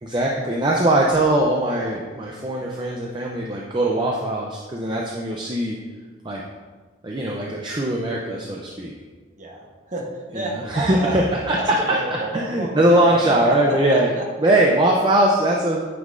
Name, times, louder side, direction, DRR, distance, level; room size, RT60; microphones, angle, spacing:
voice 1, 0.0-5.8 6.2-6.4 7.0-8.9 10.7-12.0 12.3-14.1 14.4-15.8, right 1 dB, 25° right, -2 dB, 0.5 m, -21 dB
voice 2, 9.4-11.2 11.5-14.2, right 2 dB, 40° right, 0 dB, 1.1 m, -30 dB
9.3 x 5.5 x 2.5 m, 1.4 s
head